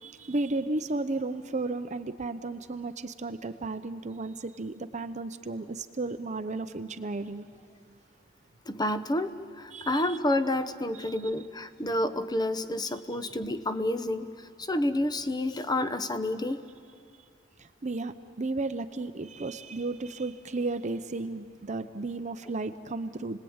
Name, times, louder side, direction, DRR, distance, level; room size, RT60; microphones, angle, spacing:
voice 1, 0.0-7.5 9.7-10.2 11.0-11.1 17.6-23.4, right 2 dB, 35° right, 10 dB, 0.7 m, -34 dB
voice 2, 8.7-16.6, left 1 dB, 20° left, 11 dB, 0.9 m, -29 dB
30.0 x 20.0 x 8.8 m, 2.4 s
head